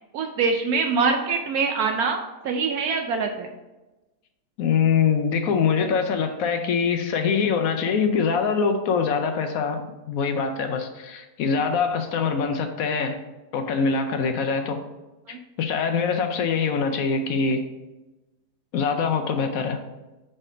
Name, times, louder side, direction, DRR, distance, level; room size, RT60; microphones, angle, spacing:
voice 1, 0.1-3.5 15.3-15.4, right 5 dB, 70° right, 4 dB, 1.0 m, -24 dB
voice 2, 4.6-13.2 13.5-14.8 15.3-17.6 18.7-19.8, left 5 dB, 70° left, 5 dB, 0.9 m, -24 dB
5.0 x 4.3 x 4.9 m, 1.1 s
omnidirectional pair, 1.8 m